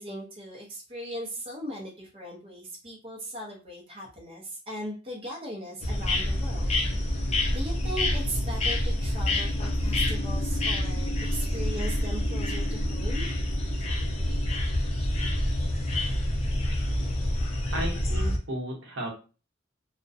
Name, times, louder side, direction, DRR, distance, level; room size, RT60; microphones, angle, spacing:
voice 1, 0.0-6.8 7.1-13.6, equal, 30° right, -2 dB, 0.6 m, -39 dB
sound 1, 5.8-18.4, left 1 dB, 35° left, 0.5 m, -27 dB
voice 2, 17.7-19.1, right 1 dB, 75° right, 0 dB, 0.8 m, -34 dB
2.4 x 2.1 x 2.5 m, 0.34 s
head